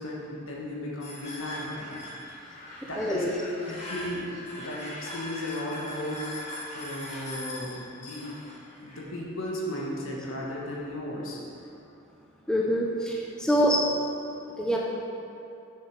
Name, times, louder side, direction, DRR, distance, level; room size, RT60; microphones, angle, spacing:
voice 1, 0.0-2.0 2.4-2.5 2.8-3.2 3.7-8.2 8.8-11.4 13.4-13.8 14.7-14.8, left 1 dB, 70° left, -3 dB, 1.6 m, -35 dB
sound 1, 1.0-9.0, left 1 dB, 35° left, 1.4 m, -40 dB
voice 2, 3.0-3.3 12.5-13.8 14.6-14.8, equal, 5° left, -3 dB, 0.5 m, -25 dB
7.0 x 6.9 x 4.7 m, 2.8 s
head